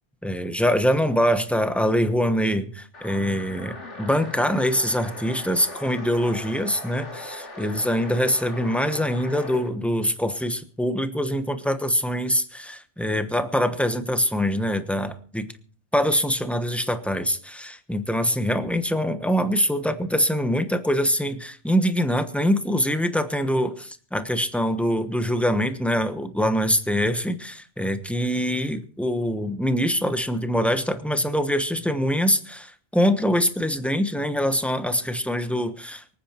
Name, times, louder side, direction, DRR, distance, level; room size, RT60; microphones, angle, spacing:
voice 1, 0.2-15.5 15.9-36.2, equal, ahead, 9 dB, 1.0 m, -24 dB
sound 1, 2.9-9.7, left 2 dB, 80° left, 3.3 m, -39 dB
24.5 x 9.1 x 4.4 m, 0.43 s
omnidirectional pair, 1.2 m